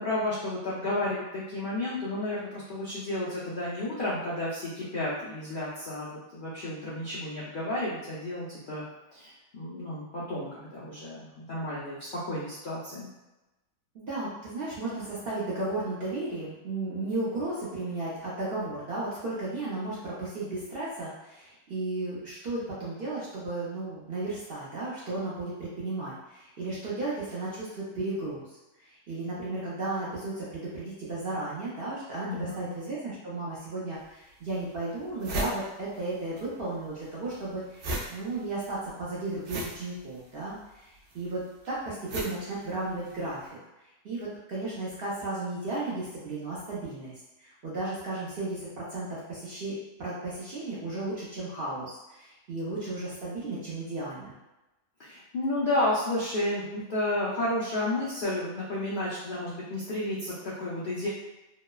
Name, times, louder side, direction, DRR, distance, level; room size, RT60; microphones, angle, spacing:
voice 1, 0.0-8.8 9.1-13.1 32.3-32.7 55.0-61.1, left 1 dB, 60° left, -9 dB, 0.5 m, -32 dB
voice 2, 13.9-28.5 28.9-43.6 44.0-47.1 47.4-54.4, right 2 dB, 55° right, -8 dB, 0.7 m, -34 dB
sound 1, 34.0-34.1 34.6-34.7 34.9-36.5 36.7-43.3, right 1 dB, 90° right, 1.1 m, -37 dB
3.0 x 2.0 x 2.2 m, 1.0 s
omnidirectional pair, 1.5 m